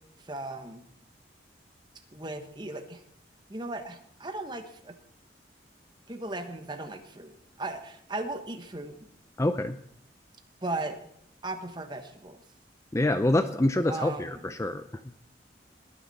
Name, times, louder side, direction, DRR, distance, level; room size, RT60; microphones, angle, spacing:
voice 1, 0.2-0.9 2.1-3.0 3.5-4.9 6.1-9.1 10.6-11.0 11.4-12.4 13.9-14.5, right 2 dB, 25° right, 7 dB, 1.3 m, -37 dB
voice 2, 9.4-9.8 12.9-14.8, left 1 dB, 15° left, 10 dB, 0.5 m, -26 dB
20.5 x 9.7 x 4.2 m, 0.72 s
head